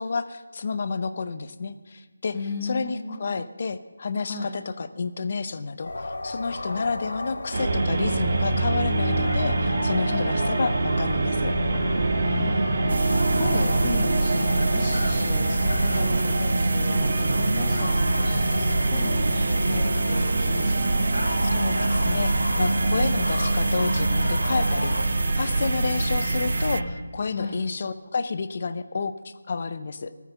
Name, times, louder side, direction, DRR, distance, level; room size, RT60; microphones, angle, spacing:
voice 1, 0.0-2.4 2.6-11.5 21.5-25.0 25.4-30.1, left 4 dB, 35° left, 13 dB, 0.7 m, -30 dB
voice 2, 2.3-3.2 4.2-4.5 10.0-10.3 12.2-21.1 27.3-27.6, left 2 dB, 20° left, -3 dB, 1.4 m, -35 dB
sound 1, 5.8-25.0, left 1 dB, 85° left, 2.0 m, -34 dB
sound 2, 7.5-26.8, right 2 dB, 40° right, 1.5 m, -25 dB
sound 3, 12.9-26.8, right 2 dB, 85° right, 0.3 m, -27 dB
17.0 x 9.5 x 5.6 m, 1.4 s
figure-of-eight pair, 175°, 0 cm